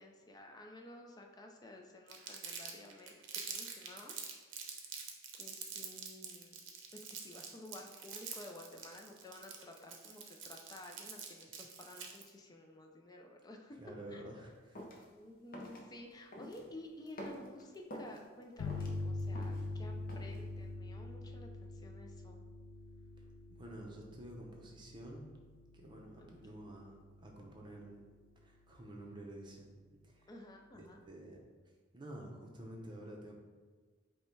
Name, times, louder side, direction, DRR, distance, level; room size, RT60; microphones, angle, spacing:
voice 1, 0.0-3.1 3.4-5.0 5.4-6.6 6.9-13.8 14.1-14.2 15.1-22.4 26.2-26.3 30.3-31.0, left 1 dB, 20° left, 2 dB, 0.4 m, -53 dB
Crumpling crinkling, 2.1-12.3, right 6 dB, 70° right, 0.7 m, -46 dB
voice 2, 13.8-14.8 23.5-25.3 25.7-28.0 28.4-29.7 30.0-30.3 30.7-31.4 31.9-33.3, right 1 dB, 25° right, 0 dB, 0.7 m, -50 dB
sound 1, 14.7-15.0 15.5-15.8 16.3-16.7 17.1-18.2 18.6-19.7 20.1-20.4, equal, 45° left, 0.7 m, -47 dB
sound 2, 18.6-27.9, left 3 dB, 90° left, 0.4 m, -44 dB
5.3 x 2.2 x 4.5 m, 1.5 s
head